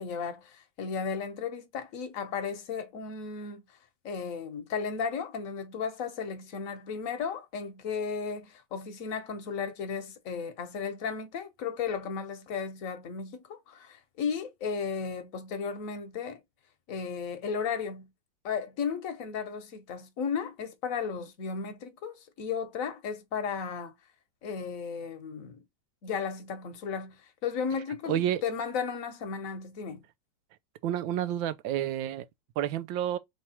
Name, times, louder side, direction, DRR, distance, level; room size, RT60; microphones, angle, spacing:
voice 1, 0.0-3.6 4.0-16.4 16.9-18.1 18.4-23.9 24.4-25.6 26.0-30.0, left 6 dB, 55° left, 1.2 m, -34 dB
voice 2, 28.1-28.4 30.8-32.2 32.6-33.2, right 11 dB, 90° right, 1.4 m, -29 dB
3.5 x 3.2 x 4.2 m
omnidirectional pair, 2.0 m